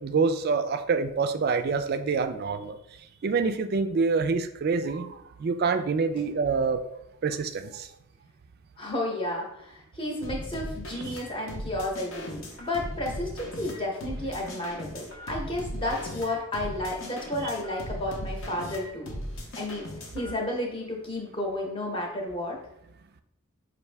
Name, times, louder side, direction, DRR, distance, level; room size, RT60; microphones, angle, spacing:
voice 1, 0.0-2.8 3.2-6.8 7.2-7.9, right 4 dB, 45° right, 9 dB, 0.3 m, -26 dB
voice 2, 8.8-19.1 19.6-19.8 20.1-22.6, left 1 dB, 25° left, -1 dB, 0.8 m, -32 dB
sound 1, 10.2-20.3, equal, 60° left, 0.8 m, -38 dB
5.4 x 2.6 x 3.3 m, 0.80 s
head